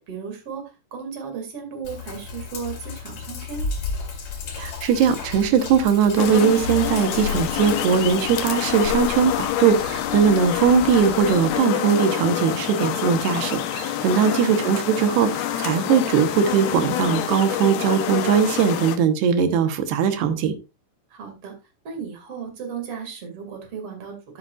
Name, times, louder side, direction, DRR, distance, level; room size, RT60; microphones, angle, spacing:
voice 1, 0.0-3.7 14.1-14.5 21.1-21.5 21.8-24.4, right 6 dB, 40° right, 4 dB, 2.9 m, -35 dB
Sink (filling or washing), 1.8-11.5, left 5 dB, 55° left, 3.5 m, -33 dB
voice 2, 4.6-20.5, right 7 dB, 90° right, 9 dB, 3.2 m, -20 dB
sound 1, 6.2-19.0, left 11 dB, 75° left, 2.8 m, -27 dB
13.0 x 8.1 x 2.4 m, 0.26 s
omnidirectional pair, 4.5 m